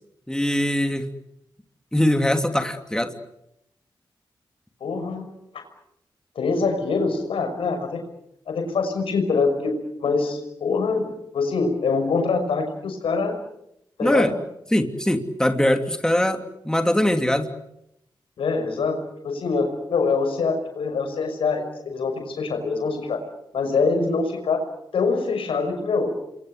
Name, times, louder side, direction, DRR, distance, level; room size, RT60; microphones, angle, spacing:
voice 1, 0.3-1.1 1.9-3.1 14.0-14.3 14.7-17.5, left 1 dB, 5° left, 6 dB, 3.0 m, -22 dB
voice 2, 4.8-5.3 5.5-5.6 6.4-8.0 8.5-13.4 14.0-14.3 18.4-19.0 19.2-23.2 23.5-24.6 24.9-26.1, left 4 dB, 90° left, 5 dB, 6.0 m, -24 dB
28.5 x 22.5 x 8.0 m, 0.81 s
cardioid pair, 50°, 9 cm